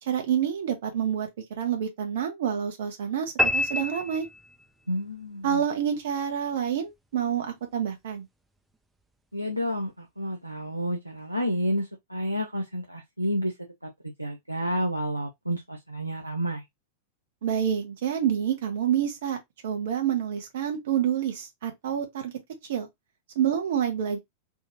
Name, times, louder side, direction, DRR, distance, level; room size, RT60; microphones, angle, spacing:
voice 1, 0.0-1.3 1.6-4.3 5.4-8.3 17.4-19.4 19.6-22.3 22.7-22.9 23.3-24.2, right 9 dB, 60° right, 1.0 m, -28 dB
sound 1, 3.4-4.9, left 1 dB, 10° right, 0.6 m, -27 dB
voice 2, 4.9-5.6 9.3-13.5 14.2-16.6, equal, 85° right, 0.5 m, -30 dB
3.5 x 2.5 x 2.9 m
figure-of-eight pair, 90°, 0 cm